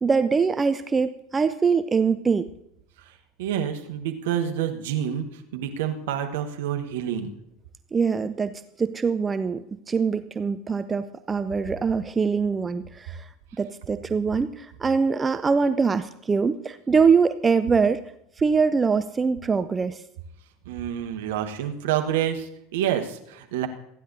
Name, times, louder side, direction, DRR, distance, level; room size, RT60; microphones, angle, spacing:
voice 1, 0.0-2.5 7.9-8.5 8.8-13.3 13.6-18.0 18.4-20.0, right 5 dB, 20° right, 11 dB, 0.5 m, -23 dB
voice 2, 3.0-7.3 20.6-23.7, right 10 dB, 60° right, 5 dB, 1.3 m, -28 dB
27.5 x 10.0 x 2.7 m, 0.80 s
figure-of-eight pair, 75°, 0 cm